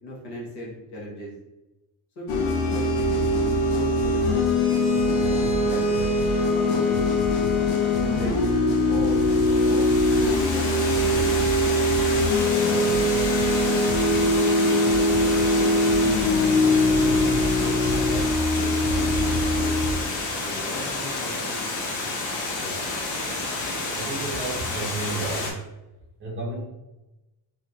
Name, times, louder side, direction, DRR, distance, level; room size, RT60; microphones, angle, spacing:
voice 1, 0.0-1.3 2.1-8.3 8.9-10.7 10.9-11.3 12.4-13.6 14.1-15.2 15.5-15.7 16.2-18.3 20.4-21.8 22.6-22.8, left 1 dB, 60° left, -5 dB, 1.3 m, -38 dB
sound 1, 2.3-19.9, left 1 dB, 85° left, 0.6 m, -22 dB
Water, 9.0-25.5, left 3 dB, 40° left, 0.6 m, -30 dB
voice 2, 23.9-25.6 26.2-26.7, right 3 dB, 25° right, -4 dB, 0.6 m, -32 dB
3.0 x 2.7 x 2.5 m, 1.0 s
cardioid pair, 150°, 47 cm